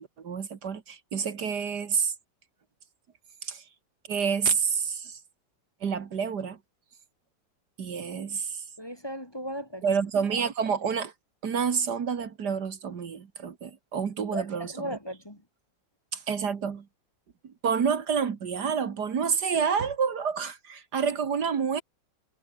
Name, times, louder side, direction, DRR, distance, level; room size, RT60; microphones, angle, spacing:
voice 1, 0.0-2.1 3.4-3.6 4.1-5.2 5.8-6.6 7.8-8.6 9.8-11.1 11.4-15.0 16.1-16.9 17.4-21.8, right 6 dB, 65° right, 2.2 m, -28 dB
voice 2, 8.8-9.8 14.3-15.4, equal, 15° left, 2.1 m, -36 dB
omnidirectional pair, 1.9 m